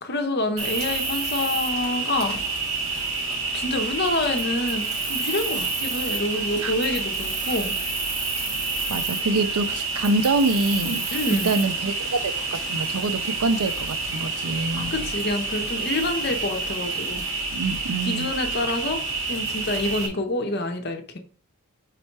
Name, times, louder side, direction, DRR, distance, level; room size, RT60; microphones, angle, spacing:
voice 1, 0.0-2.4 3.5-4.8 5.1-7.7 11.1-11.5 14.9-17.2 18.0-19.0 19.3-21.2, left 2 dB, 45° left, 1.0 m, -27 dB
Cricket, 0.6-20.1, right 3 dB, 60° right, 1.8 m, -28 dB
voice 2, 8.9-11.0 11.3-14.9 17.5-18.3, right 2 dB, 85° right, 0.6 m, -25 dB
4.9 x 4.3 x 4.6 m
head